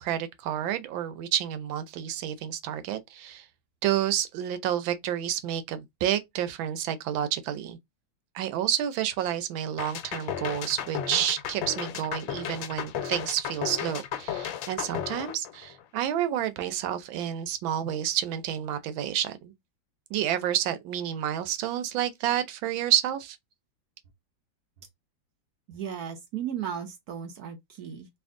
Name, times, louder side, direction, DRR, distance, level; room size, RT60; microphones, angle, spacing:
voice 1, 0.0-3.4 3.8-7.8 8.3-19.5 20.1-23.4, right 11 dB, 90° right, 1.4 m, -29 dB
sound 1, 9.8-16.0, left 9 dB, 85° left, 1.4 m, -34 dB
voice 2, 25.7-28.1, right 8 dB, 65° right, 1.0 m, -35 dB
3.4 x 2.5 x 3.6 m
omnidirectional pair, 2.1 m